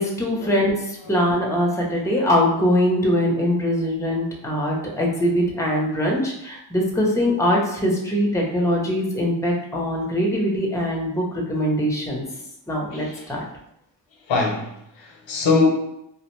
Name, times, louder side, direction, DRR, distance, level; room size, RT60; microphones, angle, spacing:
voice 1, 0.0-12.2 12.7-13.4, equal, 5° left, -1 dB, 0.6 m, -22 dB
voice 2, 12.9-13.4 14.3-15.7, left 4 dB, 90° left, 1 dB, 0.7 m, -23 dB
2.5 x 2.0 x 2.9 m, 0.80 s
cardioid pair, 75°, 44 cm